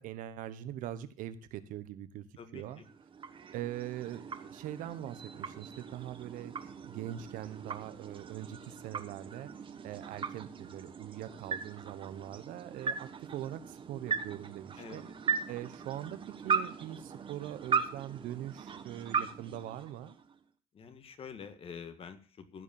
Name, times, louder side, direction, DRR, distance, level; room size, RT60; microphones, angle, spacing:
voice 1, 0.0-2.3 2.5-2.8 3.5-9.5 9.8-15.1 15.5-16.2 16.4-20.1, right 12 dB, 80° right, 13 dB, 1.1 m, -42 dB
sound 1, 2.7-20.4, right 6 dB, 40° right, 1.3 m, -38 dB
voice 2, 20.7-22.6, left 6 dB, 45° left, 9 dB, 1.7 m, -46 dB
15.0 x 5.2 x 7.1 m, 0.42 s
cardioid pair, 95°, 14 cm